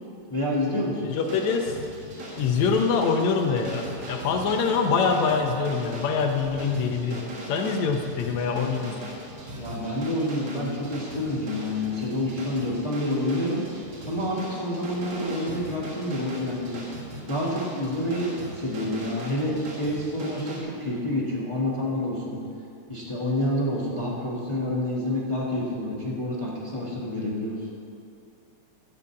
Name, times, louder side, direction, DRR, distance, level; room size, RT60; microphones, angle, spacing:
voice 1, 0.3-1.0 9.6-16.9 17.3-22.4 22.9-27.6, left 1 dB, 30° left, -5 dB, 0.5 m, -28 dB
voice 2, 1.0-1.8 2.4-7.2 7.5-9.1, left 5 dB, 75° left, 4 dB, 2.0 m, -24 dB
sound 1, 1.2-20.6, right 1 dB, 45° right, 2.0 m, -39 dB
13.5 x 5.1 x 8.4 m, 2.5 s
omnidirectional pair, 3.4 m